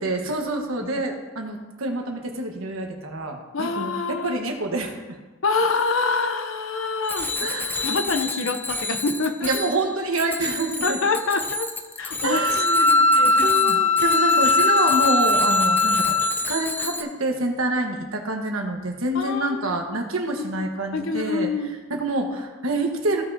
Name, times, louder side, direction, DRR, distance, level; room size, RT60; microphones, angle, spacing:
voice 1, 0.0-5.0 7.4-7.9 9.4-11.0 12.2-13.0 13.4-21.5 21.9-23.2, right 2 dB, 85° right, 2 dB, 1.3 m, -27 dB
voice 2, 3.5-4.4 5.4-7.3 7.8-9.5 10.8-11.7 12.0-12.4 12.8-13.8 14.5-14.8 19.1-20.0 20.4-20.7 20.9-21.8, left 4 dB, 70° left, 8 dB, 0.7 m, -26 dB
Bicycle bell, 7.0-17.0, left 3 dB, 10° left, 0.3 m, -30 dB
Wind instrument woodwind instrument, 12.3-16.3, left 3 dB, 35° left, 1.6 m, -19 dB
15.5 x 5.7 x 2.7 m, 1.2 s
head